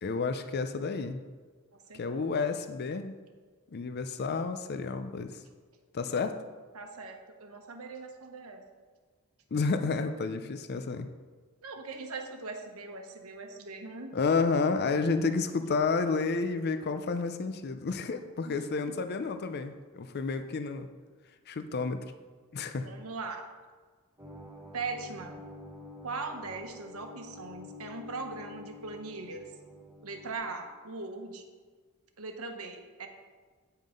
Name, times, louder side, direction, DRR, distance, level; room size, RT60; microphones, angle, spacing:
voice 1, 0.0-1.2 1.9-3.2 3.7-5.4 5.9-6.4 9.5-11.1 14.1-20.9 21.5-22.0 22.5-22.9, left 4 dB, 50° left, 8 dB, 0.5 m, -30 dB
voice 2, 1.9-2.3 6.7-8.6 10.0-10.1 11.6-14.1 18.4-18.6 18.9-19.0 22.8-23.4 24.7-25.4 26.0-29.5 30.0-31.4 32.2-33.1, right 3 dB, 80° right, 4 dB, 1.1 m, -40 dB
sound 1, 24.2-30.3, left 2 dB, 10° right, 1.7 m, -48 dB
9.2 x 5.7 x 5.1 m, 1.5 s
head